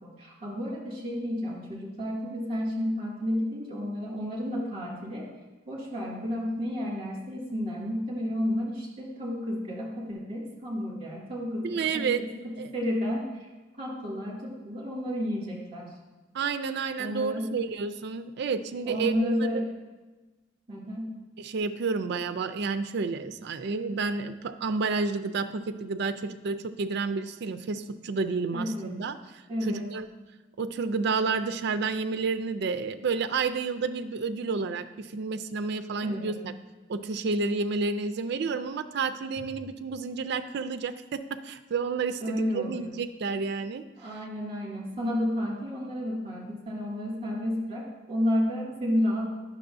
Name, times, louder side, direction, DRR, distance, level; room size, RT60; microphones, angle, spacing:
voice 1, 0.0-5.3 5.7-13.5 13.8-15.9 17.0-17.6 18.9-19.7 20.7-21.2 28.5-29.0 29.5-29.9 36.0-36.4 42.2-42.9 44.0-49.3, equal, 35° right, -3 dB, 2.2 m, -31 dB
voice 2, 11.6-12.2 12.6-12.7 16.3-19.3 21.4-29.1 29.7-30.1 30.6-36.5 36.9-43.8, right 4 dB, 60° right, 9 dB, 0.4 m, -30 dB
9.7 x 6.1 x 2.6 m, 1.2 s
head